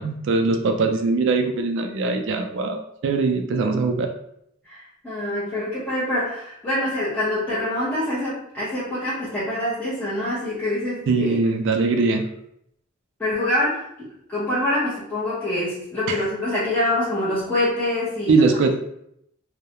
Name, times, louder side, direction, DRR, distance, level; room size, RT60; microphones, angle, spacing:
voice 1, 0.0-4.1 11.1-12.2 16.1-16.2 18.3-18.7, right 3 dB, 60° right, 5 dB, 0.3 m, -21 dB
voice 2, 4.6-11.4 13.2-18.3, left 1 dB, 10° left, -12 dB, 0.6 m, -25 dB
2.2 x 2.0 x 2.9 m, 0.74 s
head